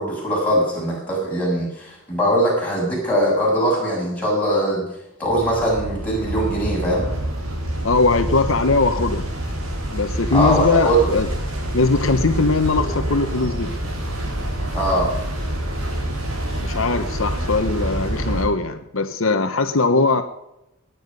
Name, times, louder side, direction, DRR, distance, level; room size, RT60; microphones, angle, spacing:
voice 1, 0.0-4.8 5.2-7.2 10.3-11.1 14.7-15.1, equal, 5° left, -5 dB, 7.1 m, -21 dB
sound 1, 5.3-18.5, right 1 dB, 75° right, 4.6 m, -27 dB
voice 2, 7.8-9.2 9.9-11.3 11.7-13.7 16.6-20.2, left 3 dB, 65° left, 7 dB, 1.0 m, -20 dB
sound 2, 12.8-14.7, left 1 dB, 30° right, 5.3 m, -39 dB
19.0 x 9.6 x 5.4 m, 0.86 s
head